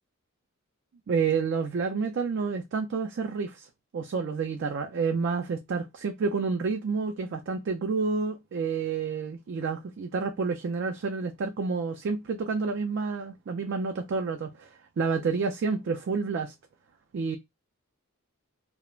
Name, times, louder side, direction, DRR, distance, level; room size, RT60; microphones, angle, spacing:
voice 1, 1.1-3.7 3.9-14.7 15.0-16.5 17.1-17.4, right 5 dB, 55° right, 0.3 m, -29 dB
2.3 x 2.0 x 3.0 m
head